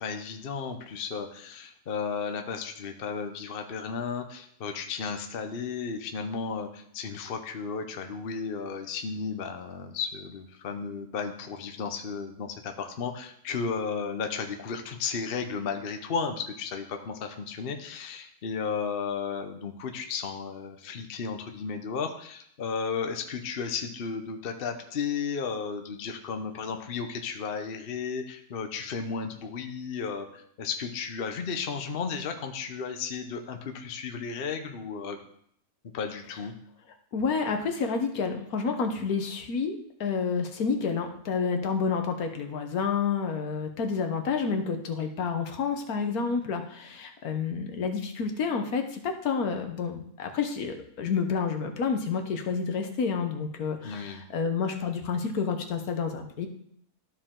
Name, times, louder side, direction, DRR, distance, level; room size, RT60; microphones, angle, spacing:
voice 1, 0.0-35.2 35.9-36.5 53.8-54.2, left 5 dB, 45° left, 5 dB, 0.8 m, -34 dB
voice 2, 37.1-56.5, left 5 dB, 70° left, 5 dB, 1.4 m, -29 dB
13.0 x 4.7 x 3.7 m, 0.67 s
omnidirectional pair, 1.6 m